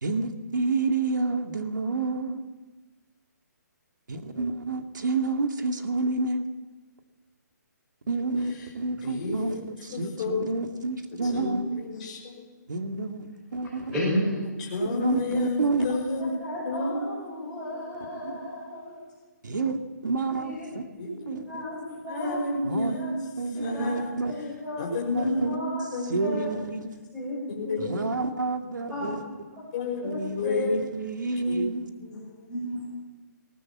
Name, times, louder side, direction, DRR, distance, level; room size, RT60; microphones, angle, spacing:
voice 1, 0.0-2.4 4.1-6.4 8.1-11.9 12.7-13.9 14.9-15.9 18.2-18.3 19.4-20.8 21.3-21.6 22.6-23.0 23.4-24.4 25.1-25.6 26.0-26.9 27.8-29.2 30.0-31.9, right 3 dB, 85° right, 5 dB, 2.2 m, -29 dB
voice 2, 9.0-9.6 9.9-10.5 11.2-12.4 14.0-14.1 14.7-16.3 16.6-18.7 21.0-21.4 22.0-23.2 23.6-24.1 24.8-26.2 27.5-28.1 29.0-29.3 29.7-30.7 31.5-31.7 32.0-32.5, left 2 dB, 25° left, -2 dB, 5.4 m, -31 dB
voice 3, 13.9-14.3 16.4-19.0 20.3-20.7 21.2-22.4 22.9-23.1 23.7-23.9 24.2-24.8 25.2-25.8 26.2-26.5 27.1-27.4 27.6-28.0 28.9-29.1 30.4-30.7 32.1-32.2 32.5-32.8, left 1 dB, 10° right, -9 dB, 6.0 m, -33 dB
20.5 x 19.0 x 7.4 m, 1.2 s
hypercardioid pair, 180°, 10 cm